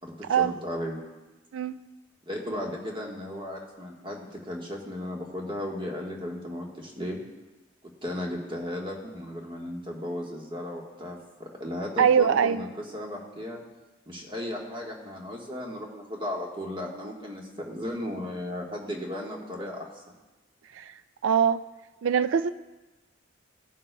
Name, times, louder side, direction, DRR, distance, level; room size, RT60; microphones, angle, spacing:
voice 1, 0.0-1.0 2.3-7.2 8.0-12.7 12.9-13.6 14.1-20.0, left 1 dB, 25° right, -1 dB, 1.4 m, -35 dB
voice 2, 12.0-12.6 20.7-20.9 21.2-21.6 22.0-22.5, right 7 dB, 75° right, 13 dB, 0.3 m, -22 dB
16.5 x 7.3 x 2.2 m, 1.1 s
head